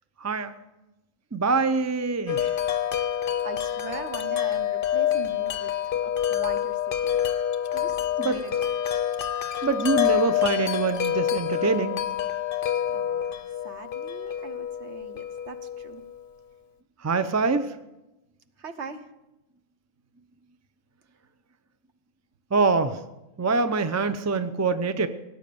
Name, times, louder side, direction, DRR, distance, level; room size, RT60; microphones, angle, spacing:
voice 1, 0.2-0.5 1.3-2.5 8.2-8.4 9.6-12.0 17.0-17.7 22.5-23.0 23.4-25.1, right 4 dB, 25° right, 11 dB, 0.3 m, -24 dB
Wind chime, 2.3-16.2, left 10 dB, 50° left, 0.8 m, -27 dB
voice 2, 3.4-7.2 7.7-9.0 12.9-16.0 18.6-19.1, right 5 dB, 55° right, 10 dB, 1.2 m, -41 dB
17.5 x 9.1 x 6.9 m, 0.97 s
omnidirectional pair, 1.5 m